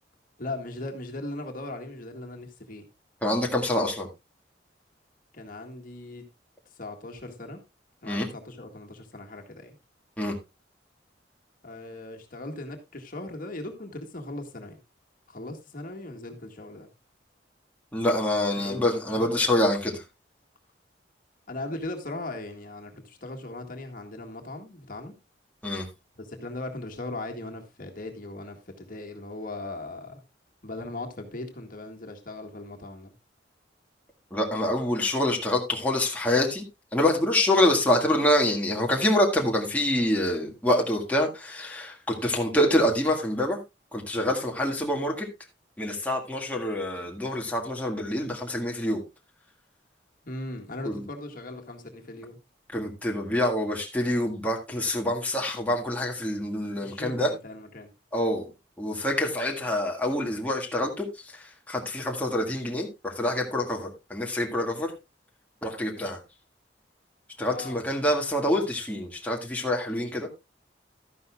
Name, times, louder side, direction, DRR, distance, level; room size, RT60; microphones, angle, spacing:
voice 1, 0.4-2.9 5.3-6.2 6.8-7.6 8.0-9.8 11.6-14.8 15.3-16.9 18.6-18.8 19.1-19.4 21.5-25.1 26.2-30.2 30.6-33.1 50.3-52.4 56.8-57.9 67.5-67.8, left 2 dB, 50° left, 1.8 m, -38 dB
voice 2, 3.2-4.1 8.0-8.3 10.2-10.4 17.9-20.0 25.6-25.9 34.3-36.6 36.9-43.6 43.9-45.3 45.8-49.0 50.9-51.0 52.7-57.3 58.1-58.5 58.8-64.9 65.6-66.2 67.4-70.3, left 1 dB, 10° left, 1.8 m, -26 dB
12.5 x 11.0 x 2.3 m
head